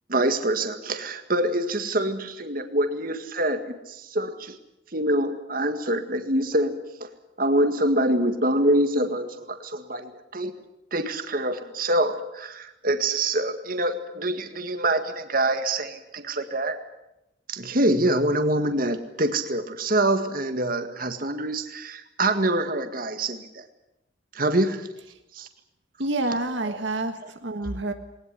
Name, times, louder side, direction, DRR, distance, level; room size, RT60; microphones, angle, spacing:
voice 1, 0.1-4.6 4.9-6.7 7.0-7.1 7.4-10.5 10.9-16.8 17.5-23.7 24.3-24.9 25.3-25.5 26.3-26.4 26.6-26.8 27.2-27.3, right 1 dB, 45° right, 8 dB, 1.8 m, -25 dB
voice 2, 26.0-27.9, right 2 dB, 70° right, 6 dB, 1.6 m, -28 dB
20.0 x 19.5 x 9.9 m, 0.90 s
head